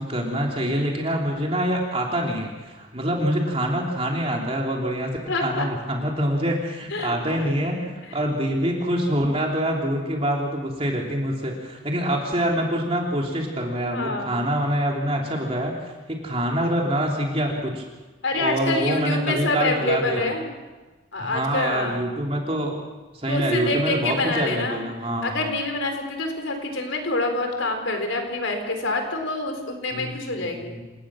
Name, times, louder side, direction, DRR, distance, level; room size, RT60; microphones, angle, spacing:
voice 1, 0.0-15.7 16.1-17.9 18.3-20.3 21.2-22.8 23.1-25.5 29.9-30.1 30.4-30.8, right 1 dB, 30° right, -1 dB, 3.2 m, -25 dB
voice 2, 5.3-5.7 6.9-7.5 13.9-14.3 18.2-20.5 21.1-22.0 23.3-24.8 25.2-30.7, left 2 dB, 85° left, 4 dB, 4.2 m, -26 dB
28.0 x 17.5 x 6.4 m, 1.2 s
head